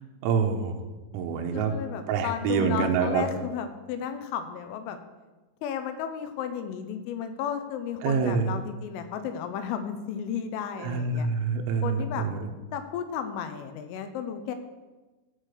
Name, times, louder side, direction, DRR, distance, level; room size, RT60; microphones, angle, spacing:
voice 1, 0.2-0.8 1.1-1.7 2.1-3.2 8.0-8.5 10.8-12.5, right 5 dB, 85° right, 4 dB, 3.6 m, -26 dB
voice 2, 1.5-5.0 5.6-11.3 11.8-12.3 12.7-14.6, left 8 dB, 80° left, 8 dB, 3.3 m, -33 dB
15.0 x 5.0 x 6.5 m, 1.2 s
omnidirectional pair, 5.9 m